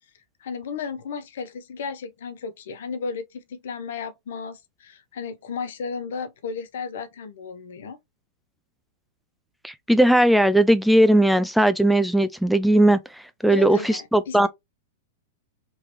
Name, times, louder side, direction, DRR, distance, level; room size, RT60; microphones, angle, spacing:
voice 1, 0.4-8.0 13.5-14.5, left 5 dB, 70° left, 0.7 m, -34 dB
voice 2, 9.6-13.0 13.4-14.5, right 1 dB, ahead, 0.3 m, -18 dB
3.1 x 2.8 x 3.0 m
hypercardioid pair, 105°, 0 cm